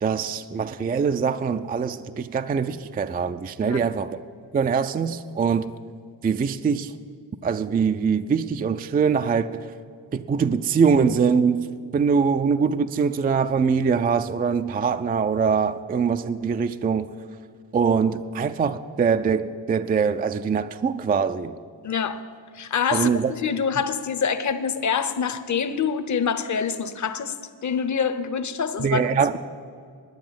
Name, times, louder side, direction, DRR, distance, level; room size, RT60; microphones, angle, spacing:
voice 1, 0.0-4.2 4.5-5.7 6.2-6.9 7.4-9.6 10.1-11.7 11.9-17.1 17.7-21.5 22.9-23.3 28.8-29.4, right 6 dB, 20° right, 0.3 m, -23 dB
voice 2, 21.8-22.2 22.5-27.4 27.6-29.4, left 6 dB, 40° left, 0.8 m, -26 dB
10.5 x 9.2 x 9.1 m
cardioid pair, 90°, 45 cm